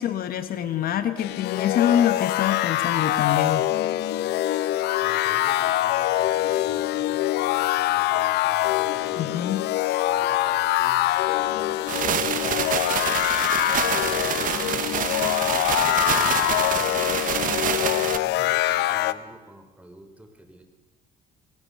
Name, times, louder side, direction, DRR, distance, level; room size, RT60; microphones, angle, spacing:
voice 1, 0.0-3.6 9.2-9.6, left 10 dB, 60° left, 11 dB, 1.3 m, -25 dB
sound 1, 1.2-19.1, left 15 dB, 80° left, 0.8 m, -24 dB
voice 2, 5.0-9.7 10.1-13.3 13.9-20.6, right 1 dB, 10° right, 5 dB, 3.4 m, -47 dB
sound 2, 11.9-18.2, right 10 dB, 55° right, 1.0 m, -27 dB
22.0 x 17.5 x 6.8 m, 1.2 s
cardioid pair, 110°, 17 cm